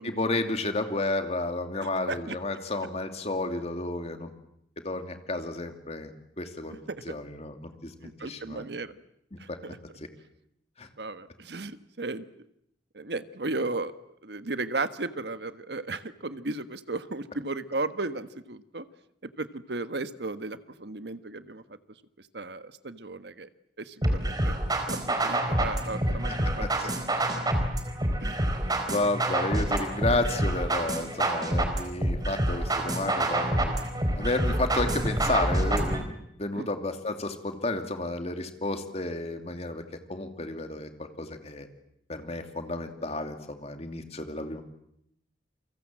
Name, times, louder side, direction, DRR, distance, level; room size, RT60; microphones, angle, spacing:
voice 1, 0.0-4.3 4.8-8.7 9.5-9.6 10.0-10.1 10.8-10.9 26.3-26.9 28.9-33.8 34.1-39.8 40.1-41.7 42.1-44.6, left 2 dB, 35° left, 6 dB, 2.7 m, -32 dB
voice 2, 8.0-8.9 9.4-9.8 11.0-12.2 12.9-13.9 14.2-18.8 19.4-21.6 22.3-23.5 23.8-24.6 24.9-26.3 26.8-27.0 27.3-27.4 28.2-28.4 36.5-36.7, right 2 dB, 70° right, 11 dB, 1.4 m, -35 dB
sound 1, 24.0-36.0, right 1 dB, 20° right, 4.2 m, -27 dB
29.0 x 24.0 x 7.6 m, 0.75 s
head